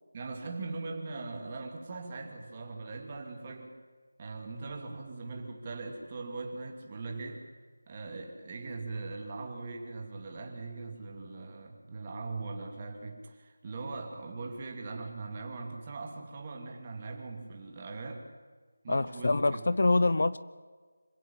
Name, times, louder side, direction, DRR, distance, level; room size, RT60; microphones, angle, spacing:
voice 1, 0.1-3.7 4.2-7.4 7.9-18.3 18.8-19.7, right 3 dB, 20° right, 2 dB, 2.5 m, -40 dB
voice 2, 18.9-20.4, left 2 dB, 50° left, 16 dB, 0.7 m, -25 dB
26.0 x 16.5 x 8.9 m, 1.5 s
figure-of-eight pair, 175°, 0 cm